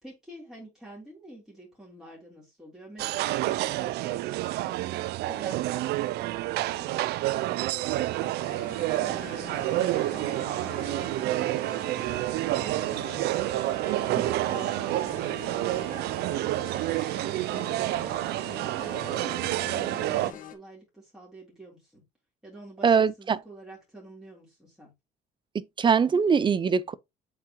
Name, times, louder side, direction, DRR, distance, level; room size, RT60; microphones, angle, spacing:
voice 1, 0.0-4.2 18.1-22.0 22.4-24.9, right 1 dB, 5° right, 3.5 m, -49 dB
sound 1, 3.0-20.3, right 16 dB, 75° right, 0.4 m, -29 dB
sound 2, 8.4-20.6, left 8 dB, 55° left, 1.2 m, -44 dB
voice 2, 22.8-23.4 25.5-26.9, right 6 dB, 30° right, 0.6 m, -22 dB
7.5 x 4.7 x 3.0 m
cardioid pair, 110°, 17 cm